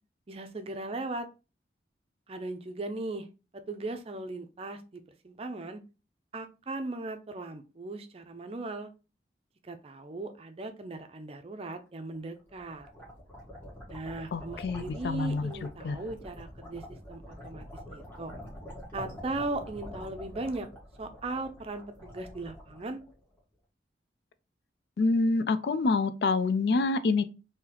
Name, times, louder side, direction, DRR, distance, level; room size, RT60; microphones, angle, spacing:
voice 1, 0.3-1.3 2.3-3.3 3.5-5.8 6.3-8.9 9.6-12.9 13.9-18.3 18.9-20.7 21.0-23.0, right 2 dB, 35° right, 0.5 m, -38 dB
sound 1, 12.2-23.4, equal, 15° left, 1.4 m, -46 dB
voice 2, 14.3-15.5 15.8-16.0 25.0-27.3, left 3 dB, 65° left, 0.4 m, -27 dB
3.9 x 2.8 x 2.8 m
head